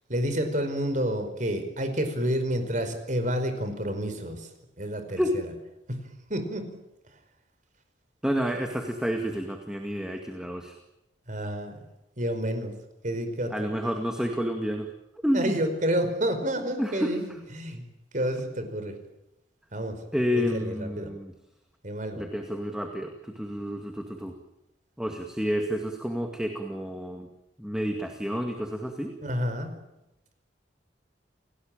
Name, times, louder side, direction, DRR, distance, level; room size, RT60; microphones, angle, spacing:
voice 1, 0.1-4.5 4.8-5.4 6.3-6.6 11.3-11.7 12.2-12.7 13.0-13.7 15.3-17.8 18.1-18.9 19.7-20.0 20.4-21.1 21.8-22.2 29.2-29.7, equal, 45° right, 8 dB, 4.9 m, -29 dB
voice 2, 8.2-10.8 13.5-14.9 15.2-15.6 16.8-17.2 20.1-21.3 22.2-24.3 25.0-27.3 27.6-29.1, equal, 5° right, 3 dB, 2.1 m, -29 dB
29.5 x 18.0 x 9.0 m, 0.90 s
head